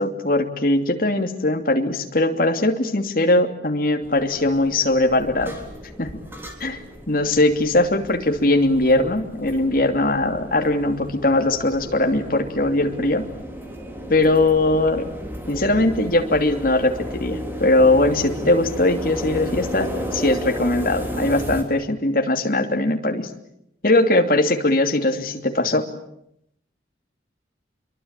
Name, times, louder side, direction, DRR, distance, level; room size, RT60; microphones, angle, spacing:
voice 1, 0.0-5.6 6.0-6.2 6.6-6.8 7.1-13.3 14.1-15.0 15.5-23.3 23.8-25.9, left 2 dB, 50° left, 5 dB, 2.8 m, -20 dB
sound 1, 4.0-21.6, equal, 10° right, 3.7 m, -33 dB
27.5 x 23.0 x 8.9 m, 0.78 s
head